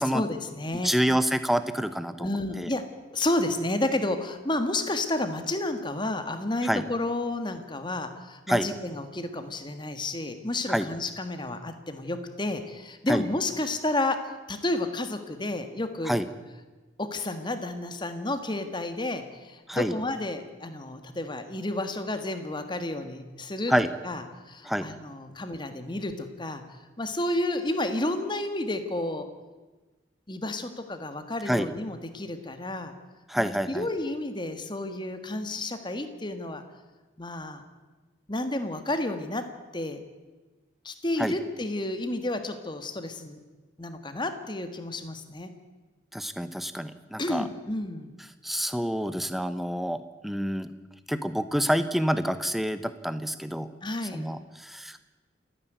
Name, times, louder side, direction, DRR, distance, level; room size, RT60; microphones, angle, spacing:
voice 1, 0.1-0.9 2.2-2.8 3.1-16.2 17.0-23.7 24.0-24.2 24.5-26.6 27.0-29.3 30.3-32.9 33.3-36.6 37.2-37.6 38.3-39.5 39.7-40.0 40.8-43.4 43.8-45.5 47.2-48.1 53.8-54.2, left 2 dB, 25° left, 8 dB, 1.6 m, -31 dB
voice 2, 0.7-2.3 2.6-2.7 6.6-6.8 8.5-8.7 10.7-10.9 13.1-13.2 16.0-16.3 19.7-19.9 23.7-23.9 24.6-24.9 31.5-31.7 33.3-33.9 41.2-41.3 46.1-47.5 48.4-50.7 51.1-53.7 54.0-55.0, equal, ahead, 11 dB, 0.9 m, -27 dB
28.5 x 10.0 x 9.3 m, 1.3 s
head